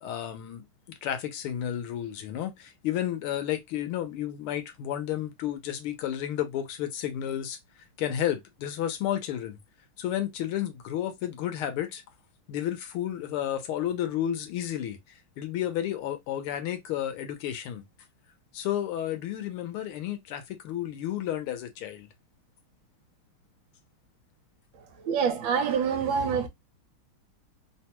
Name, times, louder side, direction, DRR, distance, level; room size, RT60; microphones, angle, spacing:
voice 1, 0.0-7.6 8.0-9.6 10.0-12.0 12.5-17.8 18.5-22.1, left 11 dB, 85° left, 1.6 m, -32 dB
voice 2, 25.0-26.5, right 6 dB, 70° right, 1.5 m, -26 dB
3.8 x 2.2 x 2.9 m
omnidirectional pair, 2.3 m